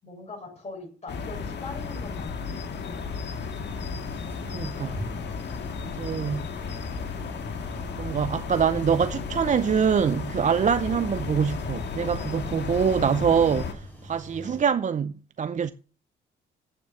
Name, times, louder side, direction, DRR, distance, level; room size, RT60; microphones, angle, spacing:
voice 1, 0.0-3.0 5.7-5.9 10.8-11.0 14.4-14.6, left 3 dB, 35° left, 7.2 m, -42 dB
sound 1, 1.1-13.7, left 5 dB, 60° left, 1.9 m, -34 dB
sound 2, 3.7-14.6, equal, 10° left, 5.6 m, -44 dB
voice 2, 4.5-4.9 6.0-6.4 7.9-15.7, right 7 dB, 40° right, 0.5 m, -24 dB
9.1 x 8.4 x 7.0 m
cardioid pair, 90°, 20 cm